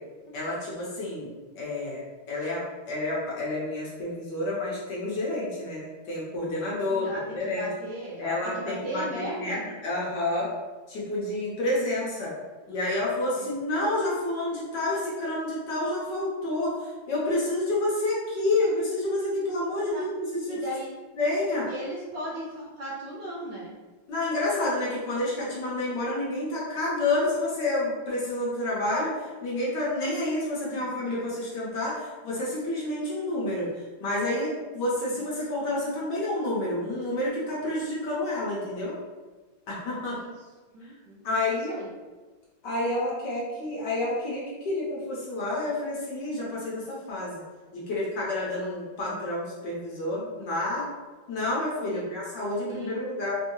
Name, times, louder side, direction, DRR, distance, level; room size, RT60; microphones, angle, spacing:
voice 1, 0.3-1.3 1.6-2.0 2.3-7.1 7.3-7.7 8.2-10.5 10.9-12.3 12.7-20.6 21.1-21.7 24.1-33.7 34.0-39.0 39.7-40.2 41.2-41.8 42.6-47.4 47.7-50.9 51.3-53.3, left 2 dB, 65° left, -6 dB, 1.2 m, -29 dB
voice 2, 6.9-9.7 13.3-13.4 19.7-20.0 20.5-20.9 21.7-23.7 31.0-31.1 35.1-35.2 40.1-40.3 40.7-41.9 49.0-49.2 51.9-52.0 52.7-53.0, equal, 70° right, -5 dB, 1.1 m, -37 dB
3.4 x 3.0 x 2.6 m, 1.3 s
omnidirectional pair, 2.4 m